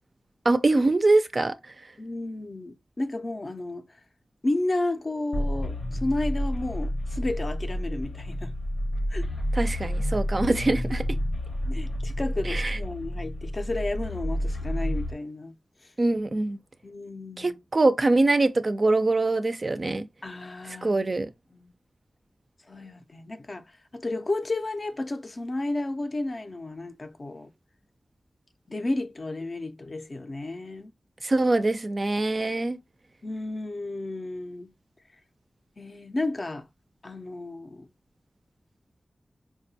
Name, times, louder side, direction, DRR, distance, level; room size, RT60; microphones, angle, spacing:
voice 1, 0.5-1.6 9.5-11.0 12.4-12.8 16.0-16.6 17.4-20.1 20.8-21.3 31.2-32.8, right 2 dB, 40° right, 0.3 m, -23 dB
voice 2, 2.0-3.8 4.4-8.5 9.1-9.3 11.7-15.5 16.8-17.6 20.2-21.0 21.6-21.7 22.7-23.6 23.9-27.5 28.7-30.9 33.2-34.7 35.8-36.7 37.0-37.9, left 2 dB, 40° left, 0.4 m, -32 dB
sound 1, 5.3-15.1, equal, 70° left, 0.7 m, -30 dB
4.7 x 2.2 x 2.6 m
wide cardioid pair, 110°, 0 cm